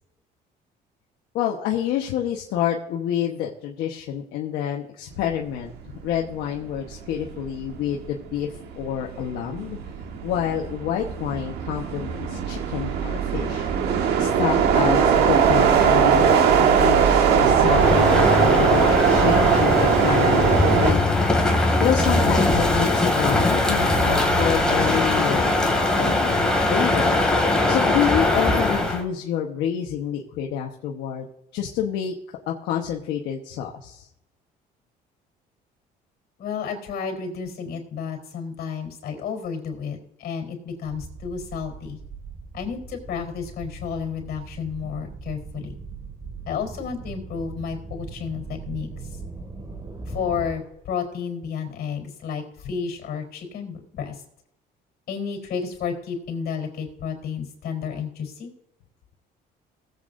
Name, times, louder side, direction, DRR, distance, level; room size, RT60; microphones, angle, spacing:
voice 1, 1.3-5.7 6.0-8.5 8.7-9.8 10.2-13.7 14.2-21.2 21.8-25.5 25.9-26.4 26.6-27.2 27.7-31.3 31.5-34.1, left 9 dB, 90° left, 0 dB, 1.2 m, -28 dB
sound 1, 5.9-6.2 6.6-20.9, right 7 dB, 75° right, 1.4 m, -20 dB
Crow, 17.6-29.0, left 2 dB, 5° left, 2.5 m, -21 dB
voice 2, 36.4-42.0 42.5-45.7 46.5-49.2 50.0-54.2 55.1-58.5, left 6 dB, 65° left, 2 dB, 4.0 m, -31 dB
sound 2, 40.8-50.5, right 4 dB, 25° right, 2.0 m, -39 dB
19.0 x 8.2 x 2.6 m, 0.81 s
cardioid pair, 110°, 17 cm